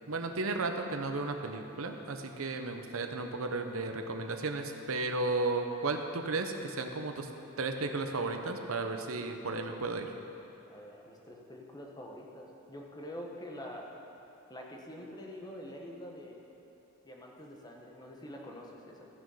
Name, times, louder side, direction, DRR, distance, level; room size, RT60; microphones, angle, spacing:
voice 1, 0.1-7.3 7.6-10.1, right 3 dB, 85° right, 5 dB, 0.9 m, -34 dB
voice 2, 10.7-14.0 14.5-16.4 17.0-19.1, equal, 20° left, -1 dB, 1.2 m, -46 dB
15.0 x 6.1 x 5.6 m, 3.0 s
head